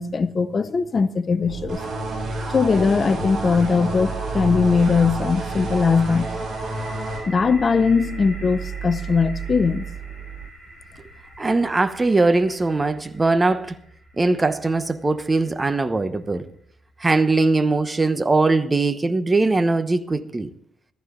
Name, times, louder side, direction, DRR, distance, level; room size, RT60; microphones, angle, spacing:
voice 1, 0.0-1.8 2.5-6.3 7.3-9.8, left 5 dB, 40° left, 0.6 m, -20 dB
sound 1, 1.5-10.5, right 9 dB, 65° right, 0.4 m, -34 dB
sound 2, 1.7-7.2, right 1 dB, 50° right, 7.4 m, -30 dB
sound 3, 5.4-17.2, right 1 dB, 5° left, 6.8 m, -45 dB
voice 2, 11.4-13.7 14.2-16.4 17.0-20.5, right 3 dB, 20° right, 0.9 m, -20 dB
14.0 x 14.0 x 3.8 m
cardioid pair, 90°, 0 cm